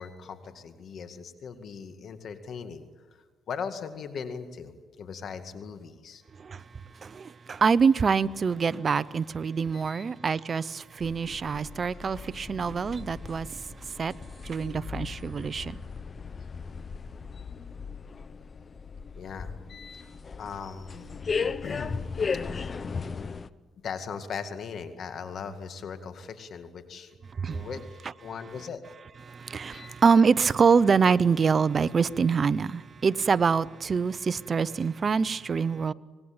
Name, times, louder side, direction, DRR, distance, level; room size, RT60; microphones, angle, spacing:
voice 1, 0.0-2.9 3.1-6.2 9.7-10.0 19.1-20.1 20.4-21.0 21.6-21.9 23.8-27.1 27.5-27.8 28.2-28.8 29.7-29.9, left 6 dB, 60° left, 2.1 m, -39 dB
voice 2, 7.0-14.1 14.4-15.8 27.4-27.7 29.3-35.9, right 5 dB, 40° right, 0.7 m, -25 dB
sound 1, 11.0-23.5, left 5 dB, 35° left, 0.9 m, -36 dB
25.0 x 20.0 x 8.8 m
cardioid pair, 90°, 0 cm